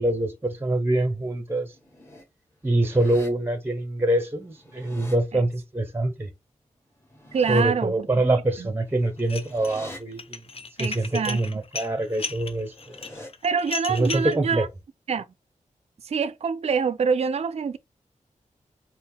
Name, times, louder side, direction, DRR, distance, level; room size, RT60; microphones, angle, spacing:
voice 1, 0.0-1.7 2.6-6.3 7.5-10.4 10.8-13.0 13.9-14.7, right 1 dB, 15° right, 0.7 m, -25 dB
sound 1, 1.6-2.2 2.7-3.3 4.4-5.2 7.0-7.6 8.9-10.0 12.5-13.3, left 1 dB, 20° left, 1.5 m, -45 dB
voice 2, 7.3-7.9 8.6-8.7 10.8-11.4 13.4-14.7 15.1-15.3 16.0-17.8, right 6 dB, 50° right, 0.4 m, -25 dB
Dishes pots and pans, 9.2-9.8 10.1-14.4, left 4 dB, 45° left, 0.5 m, -35 dB
4.2 x 2.1 x 3.6 m
wide cardioid pair, 75°, 14 cm